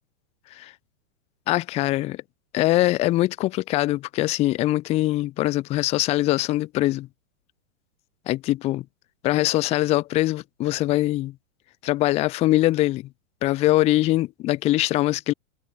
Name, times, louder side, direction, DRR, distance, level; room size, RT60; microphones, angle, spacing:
voice 1, 1.5-2.2 2.5-7.1 8.3-8.8 9.2-11.3 11.8-13.1 13.4-15.3, left 17 dB, 15° left, 0.6 m, -22 dB
supercardioid pair, 155°, 42 cm